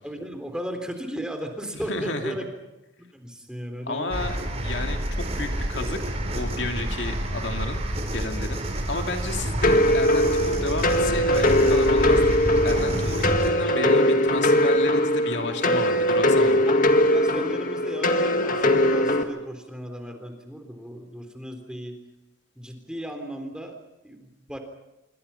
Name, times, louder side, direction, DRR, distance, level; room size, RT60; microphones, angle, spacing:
voice 1, 0.0-2.5 3.1-4.1 16.7-22.0 22.6-23.8 24.0-24.6, equal, 5° right, 5 dB, 3.4 m, -36 dB
voice 2, 1.7-2.4 3.9-4.4 4.6-7.8 8.1-16.6, left 2 dB, 60° left, 4 dB, 2.5 m, -32 dB
sound 1, 4.1-13.5, right 1 dB, 30° right, 4.1 m, -29 dB
sound 2, 9.6-19.2, left 1 dB, 45° left, 1.9 m, -21 dB
27.0 x 24.5 x 5.7 m, 0.94 s
head